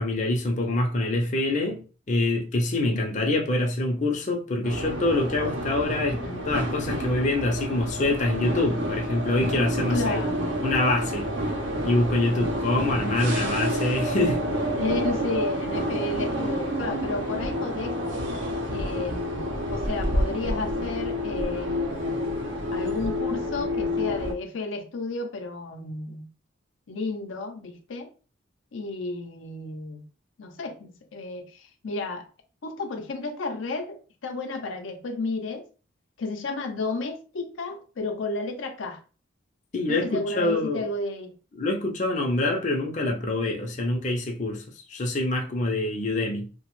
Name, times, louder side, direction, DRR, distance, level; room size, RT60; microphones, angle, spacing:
voice 1, 0.0-1.8 2.1-6.2 6.5-10.2 10.6-11.3 11.8-14.4 39.7-40.9 41.5-44.6 44.9-46.5, left 2 dB, 40° left, 0.5 m, -25 dB
sound 1, 4.6-24.3, equal, 70° right, 0.7 m, -29 dB
voice 2, 6.1-6.5 9.9-10.5 14.8-18.0 18.7-22.2 22.7-26.3 26.9-28.1 28.7-30.0 30.4-32.3 32.6-35.6 36.2-39.0 39.9-41.3, left 3 dB, 85° left, 0.6 m, -32 dB
2.9 x 2.1 x 3.0 m
head